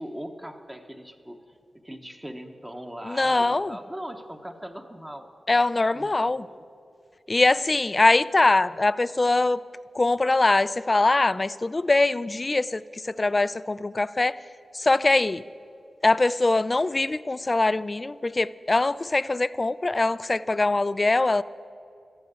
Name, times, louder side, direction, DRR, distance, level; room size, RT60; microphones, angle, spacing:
voice 1, 0.0-5.3 5.9-6.6 8.4-8.8, equal, 10° right, 4 dB, 0.9 m, -40 dB
voice 2, 3.1-3.8 5.5-6.4 7.3-9.6 9.9-14.4 14.7-15.4 16.0-21.4, left 2 dB, 25° left, 17 dB, 0.3 m, -22 dB
14.0 x 10.0 x 8.7 m, 2.4 s
wide cardioid pair, 140°, 0 cm